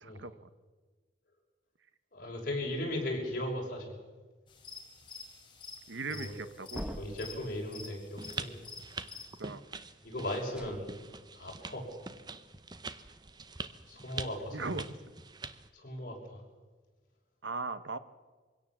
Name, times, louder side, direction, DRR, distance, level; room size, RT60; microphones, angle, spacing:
voice 1, 0.0-0.5 5.9-6.9 9.4-9.6 14.5-14.8 17.4-18.0, right 3 dB, 85° right, 12 dB, 1.1 m, -38 dB
voice 2, 2.1-4.0 6.1-6.3 6.8-8.6 10.0-10.9 11.3-11.9 13.9-14.7 15.7-16.4, left 1 dB, 50° left, -1 dB, 6.1 m, -37 dB
sound 1, 4.5-9.4, left 4 dB, 25° left, 3.2 m, -49 dB
sound 2, 6.7-7.6 10.5-10.8, equal, 5° right, 1.1 m, -42 dB
sound 3, 8.2-15.7, right 4 dB, 25° right, 0.8 m, -44 dB
23.5 x 17.0 x 7.4 m, 1.3 s
head